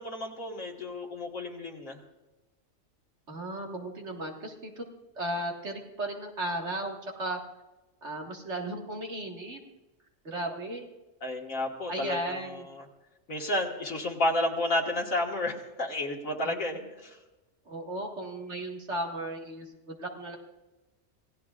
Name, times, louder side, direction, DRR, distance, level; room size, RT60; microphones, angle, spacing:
voice 1, 0.0-2.0 11.2-12.4 13.3-17.2, left 1 dB, 80° left, -1 dB, 2.2 m, -31 dB
voice 2, 3.3-4.9 5.2-7.4 8.0-9.6 10.2-10.8 11.9-12.7 16.4-16.5 17.7-20.4, right 1 dB, 60° right, 0 dB, 2.2 m, -35 dB
27.0 x 17.0 x 2.5 m, 1.1 s
omnidirectional pair, 1.4 m